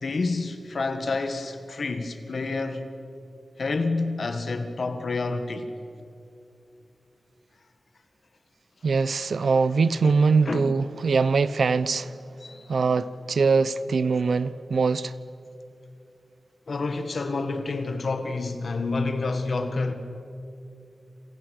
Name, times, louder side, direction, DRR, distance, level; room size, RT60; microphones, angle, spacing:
voice 1, 0.0-2.9 3.6-5.7 10.4-10.7 12.4-12.7 16.7-19.9, left 3 dB, 60° left, 1.7 m, -28 dB
voice 2, 8.8-12.1 12.7-15.1, right 4 dB, 75° right, 0.8 m, -22 dB
28.5 x 27.5 x 6.6 m
wide cardioid pair, 110°, 0 cm